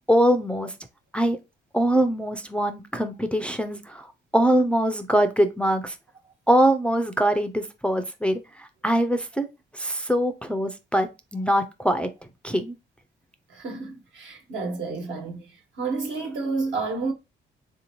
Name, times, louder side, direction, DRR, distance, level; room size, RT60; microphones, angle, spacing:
voice 1, 0.1-0.7 1.1-1.4 1.7-4.1 4.3-5.9 6.5-9.5 9.7-11.1 11.3-12.1 12.4-12.7, right 1 dB, 5° left, 0.4 m, -23 dB
voice 2, 13.5-17.1, right 3 dB, 70° right, 1.3 m, -30 dB
3.4 x 2.7 x 2.9 m
cardioid pair, 90°, 20 cm